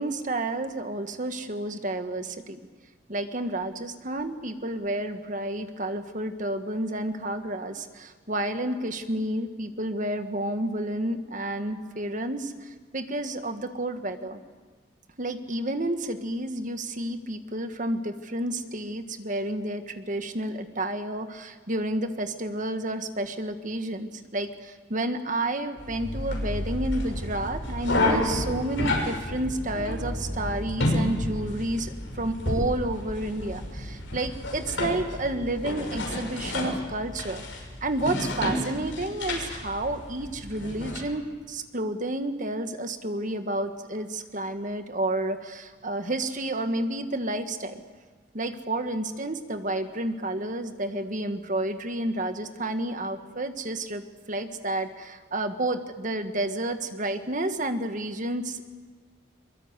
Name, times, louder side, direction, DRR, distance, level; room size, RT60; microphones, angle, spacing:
voice 1, 0.0-2.6 3.1-14.4 15.2-47.8 48.3-58.6, right 1 dB, 40° right, 7 dB, 1.6 m, -30 dB
sound 1, 25.8-41.0, left 1 dB, 75° left, 6.3 m, -31 dB
23.0 x 22.0 x 8.2 m, 1.4 s
head